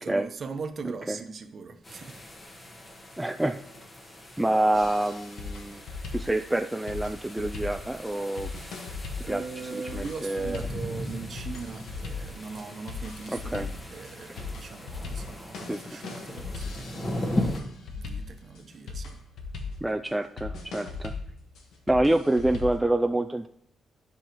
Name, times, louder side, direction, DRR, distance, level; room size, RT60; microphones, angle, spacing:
voice 1, 0.0-2.2 4.2-4.4 9.2-19.2, right 4 dB, 45° right, 0.9 m, -40 dB
sound 1, 1.8-17.6, left 1 dB, 25° left, 1.2 m, -38 dB
voice 2, 3.2-3.6 4.4-5.8 6.1-8.5 9.3-9.4 9.7-10.6 13.3-13.7 15.7-15.8 19.8-21.1 21.9-23.5, right 1 dB, 10° right, 0.3 m, -27 dB
sound 2, 4.7-22.9, left 4 dB, 75° left, 1.4 m, -39 dB
11.5 x 5.5 x 3.0 m
cardioid pair, 110°, 0 cm